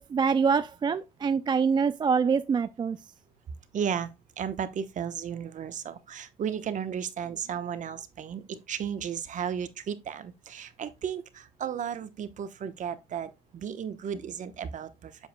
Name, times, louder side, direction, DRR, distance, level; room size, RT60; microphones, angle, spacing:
voice 1, 0.0-3.0, right 6 dB, 25° right, 0.3 m, -25 dB
voice 2, 3.7-4.1 4.4-15.1, right 8 dB, 50° right, 1.0 m, -34 dB
7.6 x 7.3 x 2.2 m
cardioid pair, 110°, 17 cm